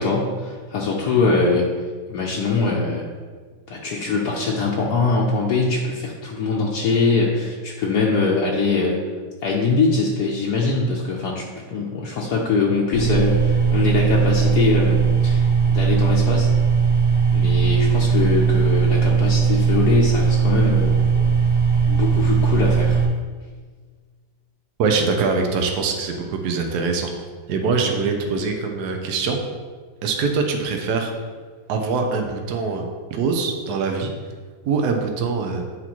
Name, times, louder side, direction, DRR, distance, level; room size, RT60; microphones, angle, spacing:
voice 1, 0.0-1.7 2.1-3.0 3.7-9.0 9.4-11.5 11.7-16.5 17.3-20.9 21.9-23.0, left 3 dB, 75° left, -3 dB, 1.2 m, -22 dB
sound 1, 12.9-23.0, right 6 dB, 15° left, 1.1 m, -18 dB
voice 2, 24.8-27.1 27.5-29.4 30.0-31.1 31.7-32.8 33.1-34.1 34.7-35.6, right 4 dB, 70° right, 3 dB, 1.3 m, -23 dB
9.4 x 4.1 x 3.0 m, 1.5 s
omnidirectional pair, 1.8 m